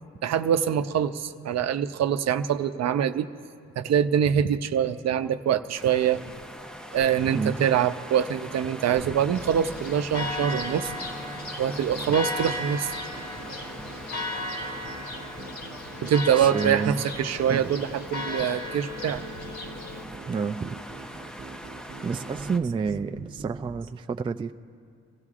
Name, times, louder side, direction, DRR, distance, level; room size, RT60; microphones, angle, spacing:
voice 1, 0.2-3.3 3.8-6.2 6.9-10.9 11.6-12.9 16.0-19.2, right 8 dB, 60° right, 9 dB, 0.7 m, -24 dB
sound 1, 5.7-22.6, equal, ahead, 0.7 m, -42 dB
voice 2, 7.3-7.7 16.4-17.0 17.5-17.6 20.3-20.8 22.0-24.5, right 5 dB, 20° right, 8 dB, 0.3 m, -29 dB
Church bell, 9.3-20.0, left 2 dB, 55° left, 2.1 m, -36 dB
sound 2, 9.3-23.9, right 4 dB, 35° right, 1.0 m, -44 dB
26.5 x 15.5 x 2.5 m, 2.3 s
cardioid pair, 90°, 30 cm